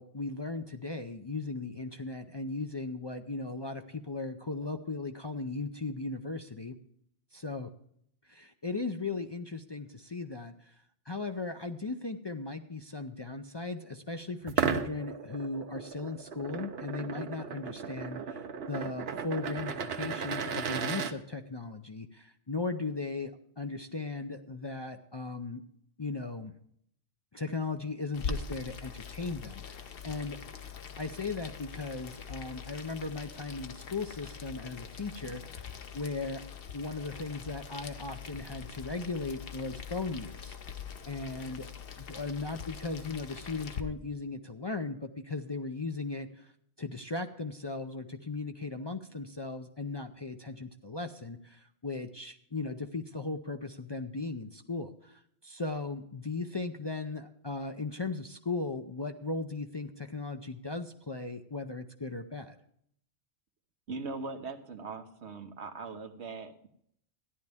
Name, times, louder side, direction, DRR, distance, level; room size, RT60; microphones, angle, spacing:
voice 1, 0.0-6.8 7.3-7.7 8.2-10.7 11.1-25.6 26.0-26.6 27.3-30.4 31.0-36.4 36.7-40.6 41.1-41.7 42.0-46.5 46.8-62.6, left 3 dB, 35° left, 5 dB, 0.5 m, -37 dB
sound 1, 14.4-21.1, right 6 dB, 70° right, 1.0 m, -35 dB
Boiling, 28.1-43.8, left 6 dB, 65° left, 1.0 m, -43 dB
voice 2, 63.9-66.7, right 4 dB, 85° right, 7 dB, 1.3 m, -40 dB
14.0 x 10.5 x 3.5 m, 0.69 s
omnidirectional pair, 1.1 m